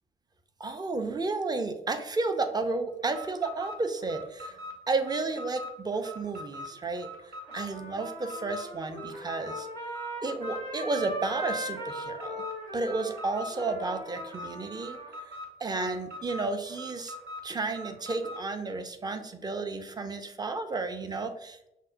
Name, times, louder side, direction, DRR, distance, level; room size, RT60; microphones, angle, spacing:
voice 1, 0.6-4.6 4.9-7.1 7.5-9.7 10.2-12.4 12.7-15.0 15.6-17.1 17.4-21.7, right 3 dB, 20° right, 7 dB, 0.5 m, -32 dB
Alarm, 3.0-18.5, equal, 55° right, 0.8 m, -43 dB
Trumpet, 7.5-15.1, equal, 85° right, 0.7 m, -40 dB
5.6 x 2.1 x 2.4 m, 0.85 s
figure-of-eight pair, 40°, 21 cm